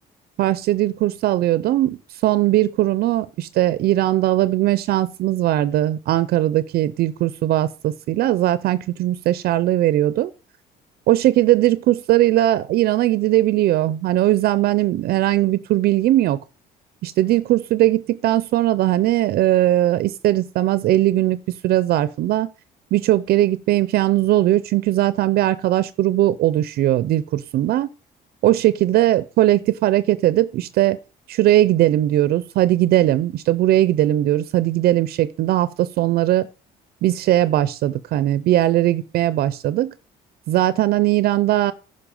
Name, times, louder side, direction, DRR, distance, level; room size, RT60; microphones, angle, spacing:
voice 1, 0.4-10.3 11.1-16.4 17.0-22.5 22.9-27.9 28.4-31.0 31.3-36.5 37.0-39.9 40.5-41.7, right 14 dB, 65° right, 0.5 m, -19 dB
10.0 x 5.6 x 5.2 m
cardioid pair, 110°, 17 cm